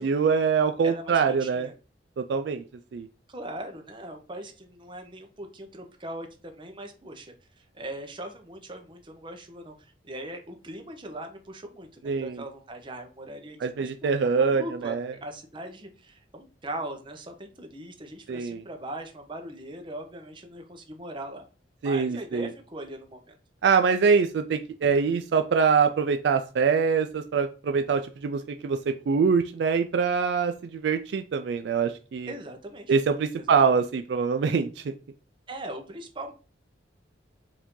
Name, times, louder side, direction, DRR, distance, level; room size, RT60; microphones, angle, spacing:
voice 1, 0.0-1.7 2.2-2.6 2.9-3.1 12.0-12.4 13.6-15.1 18.3-18.6 21.8-22.5 23.6-32.3 32.9-34.9, right 5 dB, 65° right, 8 dB, 0.3 m, -24 dB
voice 2, 0.8-1.7 3.3-21.5 21.8-23.3 32.3-32.9 33.4-33.6 35.5-36.3, right 1 dB, 25° right, 4 dB, 0.7 m, -40 dB
4.9 x 2.7 x 3.7 m, 0.36 s
head